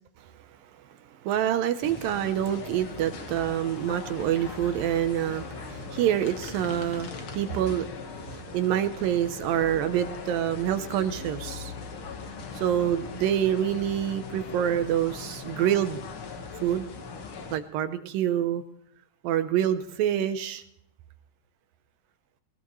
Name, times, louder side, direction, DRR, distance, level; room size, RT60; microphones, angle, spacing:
voice 1, 1.2-11.7 12.6-16.0 16.6-16.9 17.5-18.6 19.2-20.6, right 10 dB, 75° right, 10 dB, 2.3 m, -27 dB
sound 1, 1.8-17.6, left 4 dB, 60° left, 1.3 m, -40 dB
20.5 x 19.0 x 3.1 m, 0.71 s
omnidirectional pair, 4.5 m